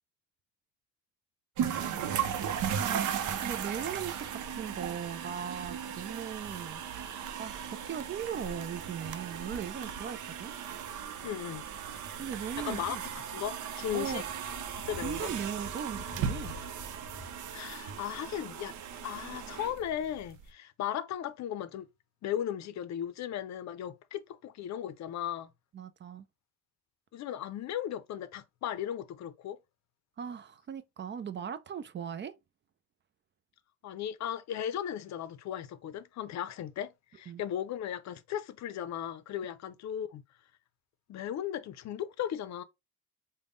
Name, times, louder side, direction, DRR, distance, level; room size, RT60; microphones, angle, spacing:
sound 1, 1.6-20.4, right 8 dB, 75° right, 0.6 m, -37 dB
voice 1, 2.8-3.1 3.4-6.8 7.4-10.5 12.2-13.0 13.9-14.2 15.0-16.6 25.7-26.2 30.2-32.3 37.3-37.4, right 8 dB, 40° right, 0.4 m, -38 dB
sound 2, 3.1-4.5 5.0-5.7 6.8-7.0 7.4-8.0 9.2-10.0 11.6-17.7, left 2 dB, 20° left, 0.7 m, -51 dB
voice 2, 11.2-11.7 12.6-13.0 13.3-14.2 14.9-15.3 17.5-18.7 19.0-21.9 22.2-25.5 27.1-29.6 33.8-40.2 41.1-42.6, left 10 dB, 65° left, 0.5 m, -36 dB
3.5 x 2.1 x 3.7 m
cardioid pair, 90°, 30 cm